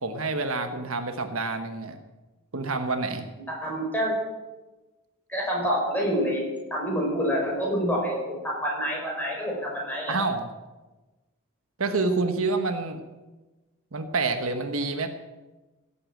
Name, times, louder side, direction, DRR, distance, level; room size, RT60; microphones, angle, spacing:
voice 1, 0.0-2.0 2.5-3.2 10.1-10.5 11.8-13.0 13.9-15.1, right 3 dB, 75° right, 7 dB, 1.2 m, -27 dB
voice 2, 3.5-4.2 5.3-6.4 6.7-10.2, equal, 10° left, -3 dB, 5.4 m, -27 dB
16.5 x 8.6 x 7.7 m, 1.2 s
head